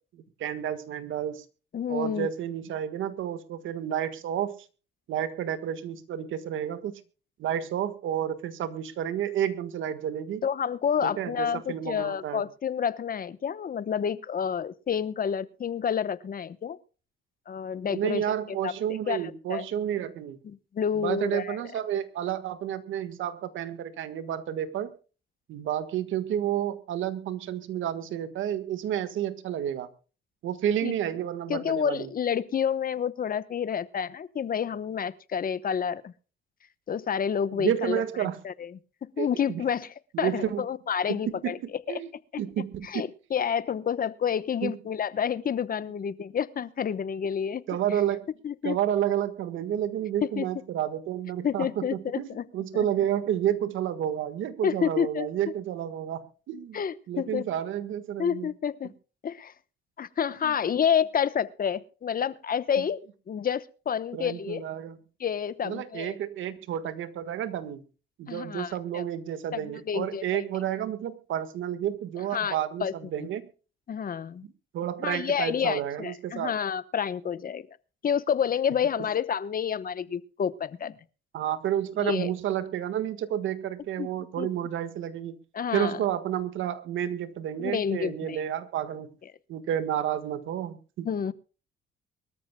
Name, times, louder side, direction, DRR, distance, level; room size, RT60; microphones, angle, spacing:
voice 1, 0.1-1.4 1.9-4.5 5.1-7.0 7.4-10.4 11.0-12.4 17.8-20.4 20.9-24.9 25.5-29.9 30.4-32.1 37.6-38.4 39.2-39.6 40.1-40.7 41.1-41.5 41.9-42.1 42.4-42.9 44.6-44.8 47.7-48.3 48.6-56.8 57.1-58.5 60.4-60.5 64.1-65.0 65.6-67.8 68.2-73.5 74.4-76.5 81.3-85.4 85.7-89.1 89.5-91.1, right 10 dB, 80° right, 12 dB, 1.6 m, -30 dB
voice 2, 1.7-2.3 10.4-16.8 17.5-18.2 18.6-18.7 19.1-19.2 19.5-19.6 20.4-21.6 30.8-31.0 31.5-36.1 36.9-38.7 39.0-39.9 40.2-41.6 42.3-42.4 42.8-47.6 48.4-48.8 50.2-50.5 51.4-52.5 52.7-52.9 54.6-55.3 56.7-57.5 58.2-58.9 59.2-59.5 60.0-64.6 65.2-66.2 68.3-69.0 69.5-70.4 72.3-73.3 73.9-74.4 75.0-77.7 78.0-81.0 82.0-82.3 84.0-84.1 84.4-84.5 85.5-86.0 87.6-88.4 91.0-91.3, left 7 dB, 45° left, 15 dB, 1.0 m, -29 dB
23.5 x 13.5 x 2.3 m, 0.36 s
cardioid pair, 90°, 20 cm